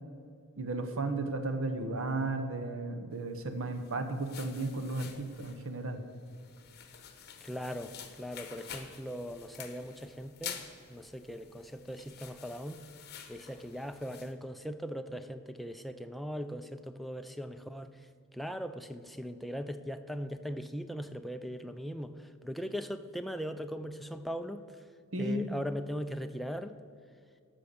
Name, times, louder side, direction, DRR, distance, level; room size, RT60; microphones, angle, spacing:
voice 1, 0.6-6.0 25.1-25.4, right 2 dB, 60° right, 6 dB, 1.0 m, -34 dB
sound 1, 3.6-14.3, left 8 dB, 45° left, 0.9 m, -49 dB
voice 2, 7.4-10.6 10.9-12.8 13.3-18.0 18.3-24.8 25.2-26.8, equal, ahead, 7 dB, 0.4 m, -39 dB
13.0 x 5.8 x 6.9 m, 2.2 s
head